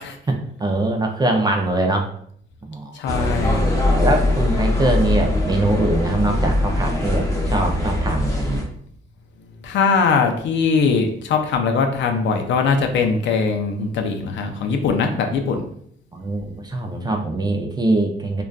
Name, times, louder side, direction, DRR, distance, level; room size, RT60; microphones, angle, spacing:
voice 1, 0.3-2.1 2.7-2.9 3.7-8.6 16.1-18.4, right 2 dB, 20° right, 3 dB, 0.4 m, -22 dB
voice 2, 2.9-3.6 9.6-15.7, left 5 dB, 70° left, 5 dB, 0.4 m, -21 dB
sound 1, 3.1-8.6, left 1 dB, 15° left, 0.7 m, -21 dB
2.5 x 2.2 x 2.3 m, 0.64 s
cardioid pair, 90°, 20 cm